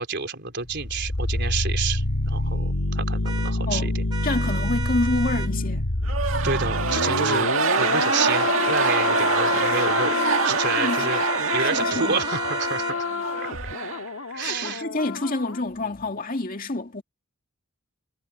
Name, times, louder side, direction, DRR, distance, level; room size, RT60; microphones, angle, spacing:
voice 1, 0.0-4.0 6.4-10.2 10.4-11.2 11.5-13.1 13.4-13.5 14.3-14.8, right 5 dB, 55° right, 4.1 m, -29 dB
sound 1, 0.6-15.6 15.9-16.0, left 3 dB, 75° left, 1.6 m, -27 dB
sound 2, 3.2-3.5 4.1-5.5 7.7-8.5 8.8-13.0, right 5 dB, 20° right, 3.2 m, -33 dB
voice 2, 4.2-5.9 10.8-11.1 11.6-12.2 14.4-17.0, left 2 dB, 45° left, 2.1 m, -28 dB
sound 3, 6.0-14.5, right 5 dB, 75° right, 2.0 m, -26 dB
head